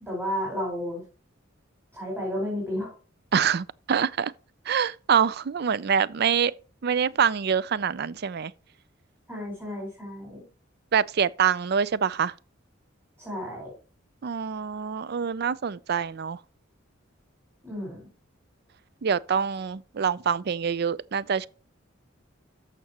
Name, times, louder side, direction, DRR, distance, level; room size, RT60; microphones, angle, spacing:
voice 1, 0.1-1.0 1.9-2.9 9.3-10.4 13.2-13.7 17.6-18.0, equal, 15° right, 4.6 m, -32 dB
voice 2, 3.3-4.3 4.7-6.5 6.8-8.5 10.9-12.3 14.2-16.4 19.0-21.5, right 7 dB, 55° right, 0.4 m, -25 dB
13.5 x 5.9 x 2.9 m
head